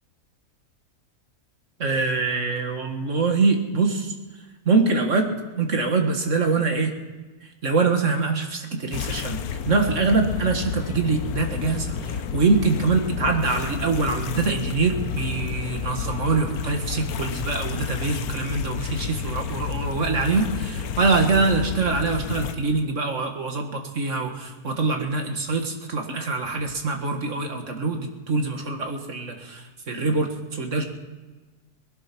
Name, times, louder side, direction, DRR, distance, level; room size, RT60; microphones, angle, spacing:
voice 1, 1.8-4.1 4.7-6.9 7.6-9.4 9.7-30.8, right 4 dB, 50° right, 4 dB, 2.0 m, -24 dB
sound 1, 8.9-22.5, left 7 dB, 75° left, 1.2 m, -31 dB
20.0 x 11.0 x 6.0 m, 1.3 s
omnidirectional pair, 1.6 m